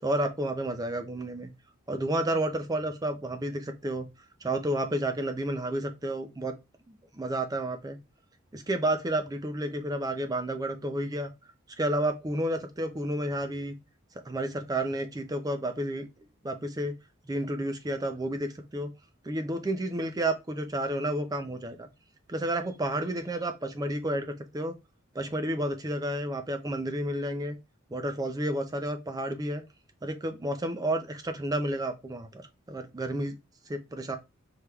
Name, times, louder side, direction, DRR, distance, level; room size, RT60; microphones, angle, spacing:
voice 1, 0.0-1.5 1.9-4.1 4.4-6.5 6.9-8.0 8.5-11.3 11.8-13.8 14.3-16.1 16.4-16.9 17.3-18.9 19.2-21.9 22.3-24.7 25.1-27.6 27.9-29.6 30.0-33.4 33.7-34.2, right 1 dB, 20° right, 0.5 m, -31 dB
4.5 x 3.3 x 2.3 m
head